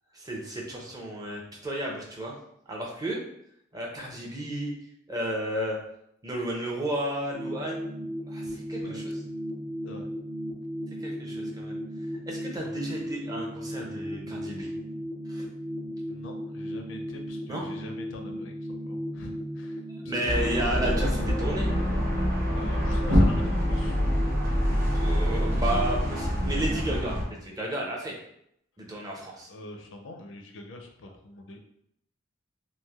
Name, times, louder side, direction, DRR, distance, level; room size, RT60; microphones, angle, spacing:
voice 1, 0.1-2.4 2.7-3.2 3.7-4.7 5.1-5.8 6.2-7.8 8.3-9.2 11.0-11.8 12.3-14.7 15.3-15.5 17.5-17.7 19.9-21.7 25.0-28.2 28.8-29.5, right 1 dB, 20° right, -1 dB, 0.5 m, -32 dB
sound 1, 7.3-26.3, equal, 80° right, 0.6 m, -36 dB
voice 2, 16.1-18.5 18.9-20.4 22.5-24.0 29.5-31.6, left 1 dB, 70° left, 3 dB, 0.4 m, -44 dB
sound 2, 20.2-27.2, equal, 50° right, 0.8 m, -25 dB
3.1 x 2.5 x 2.3 m, 0.74 s
head